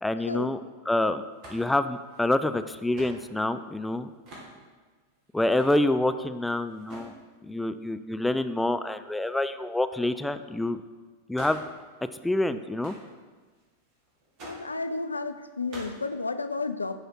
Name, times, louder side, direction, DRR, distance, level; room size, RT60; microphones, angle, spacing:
voice 1, 0.0-0.6 0.9-1.2 1.5-4.1 5.3-7.1 7.5-10.8 11.3-11.6 12.2-12.9, left 1 dB, 5° left, 11 dB, 0.3 m, -27 dB
sound 1, 1.3-3.2 3.8-3.9 4.1-4.5 5.2-5.8 6.6-7.2 11.3-11.8 12.1-12.2 12.5-12.6 12.8-14.8 15.4-16.1, right 1 dB, 40° right, 2.3 m, -46 dB
voice 2, 14.4-17.0, left 3 dB, 80° left, 10 dB, 0.4 m, -32 dB
10.0 x 4.9 x 4.6 m, 1.4 s
figure-of-eight pair, 90°, 0 cm